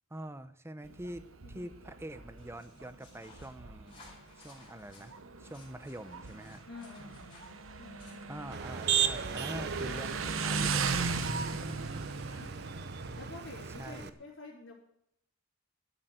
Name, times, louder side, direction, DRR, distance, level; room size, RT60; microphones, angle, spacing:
voice 1, 0.1-4.0 4.3-6.6 8.3-11.3 11.6-12.1 13.7-14.1, right 1 dB, 10° right, 12 dB, 0.8 m, -45 dB
Motorcycle, 0.8-13.8, right 4 dB, 75° right, 1.1 m, -38 dB
sound 1, 2.4-9.5, left 3 dB, 25° left, 4.4 m, -59 dB
voice 2, 6.6-8.3 11.5-12.5 13.2-14.7, left 3 dB, 65° left, -7 dB, 3.9 m, -50 dB
Motor vehicle (road), 8.5-14.1, right 7 dB, 50° right, 0.8 m, -36 dB
12.0 x 8.1 x 8.1 m, 0.75 s
head